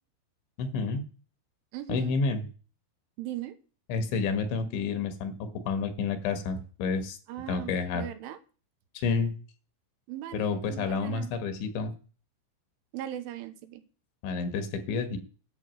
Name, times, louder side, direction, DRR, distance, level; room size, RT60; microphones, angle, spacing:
voice 1, 0.6-1.1 1.9-2.5 3.9-7.2 7.5-8.1 8.9-9.3 10.3-11.9 14.2-15.2, left 4 dB, 70° left, 8 dB, 3.5 m, -29 dB
voice 2, 1.7-2.1 3.2-3.6 7.3-8.4 10.1-11.3 12.9-13.8, right 12 dB, 80° right, 8 dB, 3.3 m, -39 dB
11.0 x 6.2 x 7.5 m, 0.37 s
omnidirectional pair, 5.8 m